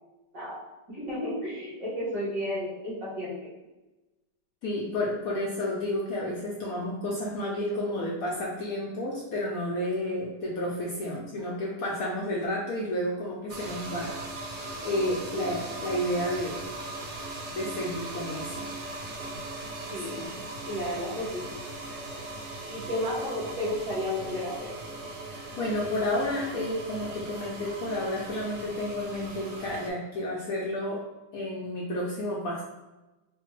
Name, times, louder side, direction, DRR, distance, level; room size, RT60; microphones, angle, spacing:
voice 1, 0.9-3.3 19.9-20.2 20.7-21.4 22.7-24.7, left 1 dB, 55° right, -9 dB, 1.8 m, -32 dB
voice 2, 4.6-14.4 14.8-16.6 17.5-18.7 20.1-20.3 25.2-31.0 31.3-32.6, left 1 dB, 70° left, -3 dB, 0.9 m, -31 dB
sound 1, 13.5-29.9, right 2 dB, 90° right, 0.6 m, -39 dB
4.2 x 2.2 x 3.0 m, 1.0 s
omnidirectional pair, 1.9 m